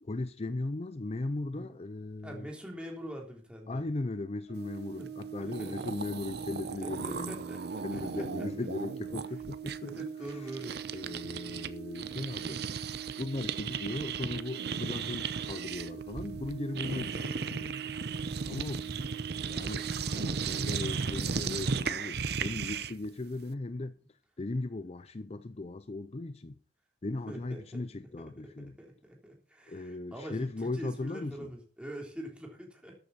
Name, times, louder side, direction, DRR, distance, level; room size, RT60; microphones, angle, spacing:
voice 1, 0.0-2.5 3.7-7.4 7.8-10.6 10.9-12.6 13.2-17.8 18.4-18.9 19.5-26.6 27.0-28.7 29.7-31.5, left 2 dB, 35° left, 0.6 m, -38 dB
voice 2, 2.2-3.8 5.0-5.1 5.4-5.7 6.8-8.5 9.8-10.8 17.0-17.2 27.3-27.8 28.2-28.3 28.8-33.0, right 1 dB, 5° right, 3.5 m, -44 dB
Brass instrument, 4.5-20.9, right 8 dB, 90° right, 1.4 m, -44 dB
sound 1, 5.2-5.3 5.5-11.7 12.0-23.1, right 5 dB, 65° right, 0.8 m, -36 dB
13.5 x 9.2 x 4.2 m
head